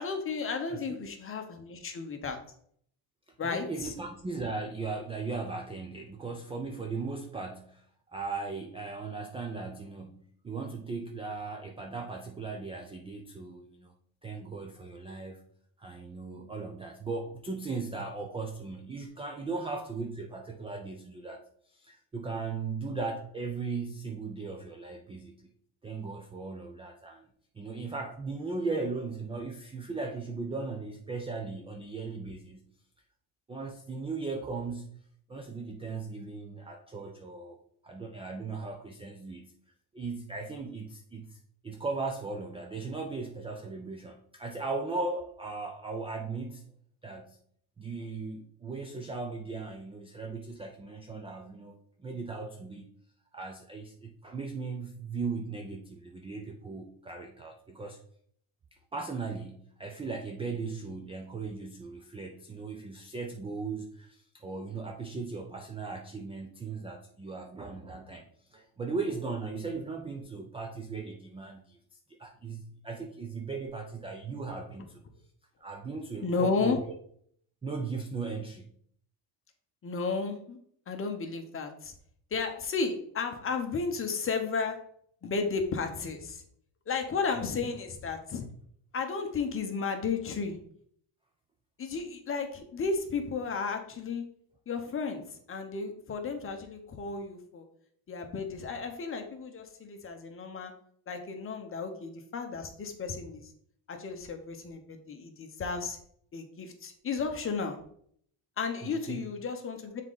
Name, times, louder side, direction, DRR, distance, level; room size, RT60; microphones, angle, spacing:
voice 1, 0.0-2.4 3.4-3.9 76.2-76.8 79.8-80.6 80.9-81.9 82.3-84.8 85.2-86.4 86.9-88.4 88.9-90.6 91.8-94.2 94.7-97.7 98.1-100.7 101.1-103.5 103.9-106.0 106.3-107.8 108.6-110.0, left 4 dB, 30° left, 5 dB, 0.9 m, -33 dB
voice 2, 3.4-13.9 14.2-15.4 15.8-25.5 25.8-27.3 27.5-32.6 33.5-35.0 35.3-37.6 37.8-39.5 39.9-41.4 41.6-46.7 47.0-47.4 47.8-52.9 53.3-58.0 58.9-71.8 72.1-75.0 75.6-76.8 77.6-78.7 87.4-87.7 108.8-109.2, right 4 dB, 15° right, 2 dB, 0.3 m, -38 dB
7.1 x 3.7 x 3.9 m, 0.64 s
cardioid pair, 145°, 47 cm